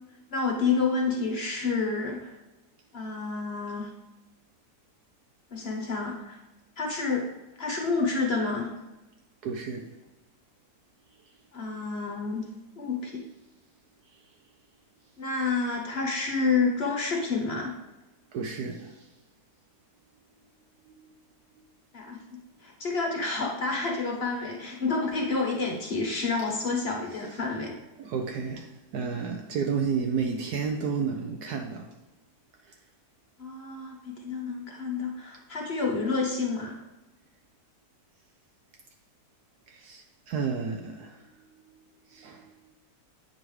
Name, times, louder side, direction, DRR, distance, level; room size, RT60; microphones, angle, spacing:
voice 1, 0.3-2.3 2.9-3.9 5.5-6.4 6.8-7.3 7.6-8.7 11.5-12.5 12.8-13.2 15.2-17.7 21.9-27.7 33.4-36.8, left 4 dB, 45° left, 1 dB, 0.9 m, -29 dB
voice 2, 9.4-10.0 11.2-11.4 14.1-14.2 18.3-19.1 20.8-21.2 21.6-21.7 22.1-22.2 28.0-31.9 32.7-32.8 39.7-42.8, right 5 dB, 70° right, 3 dB, 1.1 m, -32 dB
8.5 x 5.1 x 3.1 m, 1.1 s
omnidirectional pair, 1.8 m